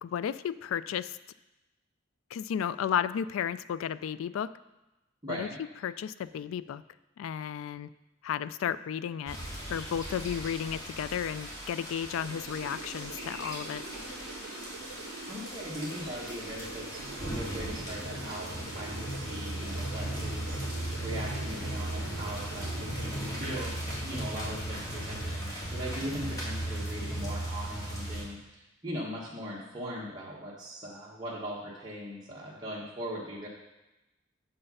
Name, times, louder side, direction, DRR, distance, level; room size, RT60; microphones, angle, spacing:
voice 1, 0.0-1.2 2.3-4.5 5.3-5.5 5.8-6.8 7.2-7.9 8.2-9.4 9.7-13.8, left 8 dB, 90° left, 16 dB, 0.3 m, -33 dB
voice 2, 5.2-5.6 15.3-20.6 21.0-33.5, equal, 20° right, -6 dB, 1.2 m, -40 dB
sound 1, 9.3-28.2, right 1 dB, 20° left, 2.2 m, -37 dB
sound 2, 12.2-23.7, right 4 dB, 85° right, 0.5 m, -46 dB
6.9 x 5.6 x 5.4 m, 0.99 s
head